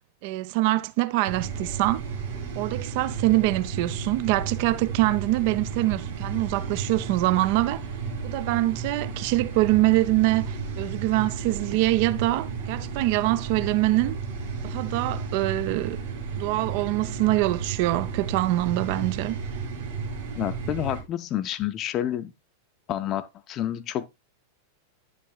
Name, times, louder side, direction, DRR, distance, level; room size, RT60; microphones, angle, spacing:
voice 1, 0.2-2.0 2.6-7.8 8.2-14.2 14.6-16.0 16.4-19.4, right 18 dB, 45° right, 0.4 m, -24 dB
sound 1, 1.3-21.0, right 5 dB, 65° right, 3.1 m, -33 dB
voice 2, 20.4-22.3 22.9-24.1, left 11 dB, 35° left, 0.5 m, -29 dB
10.5 x 7.3 x 2.3 m
figure-of-eight pair, 90°, 0 cm